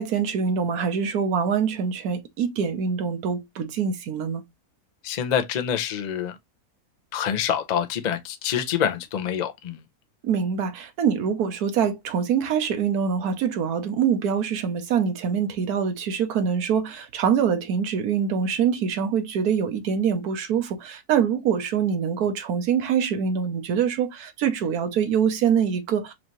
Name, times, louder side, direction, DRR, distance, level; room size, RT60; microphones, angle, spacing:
voice 1, 0.0-4.4 10.2-26.1, right 7 dB, 85° right, 1.3 m, -24 dB
voice 2, 5.0-6.3 7.1-9.8, left 8 dB, 60° left, 0.4 m, -26 dB
4.7 x 2.6 x 3.0 m
omnidirectional pair, 1.6 m